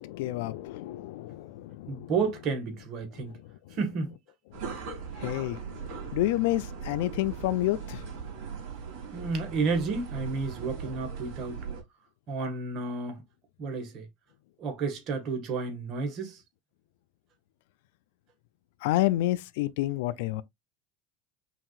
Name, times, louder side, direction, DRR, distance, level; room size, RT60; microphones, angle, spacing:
voice 1, 0.0-2.1 5.2-5.6 6.1-8.0 18.8-20.4, left 16 dB, 80° left, 0.4 m, -29 dB
voice 2, 1.9-3.4 3.8-4.1 9.1-11.6 12.3-13.2 13.6-14.1 14.6-16.4, right 4 dB, 50° right, 1.6 m, -31 dB
sound 1, 4.5-11.8, right 6 dB, 70° right, 3.0 m, -39 dB
5.8 x 2.6 x 2.4 m
supercardioid pair, 100°, 0 cm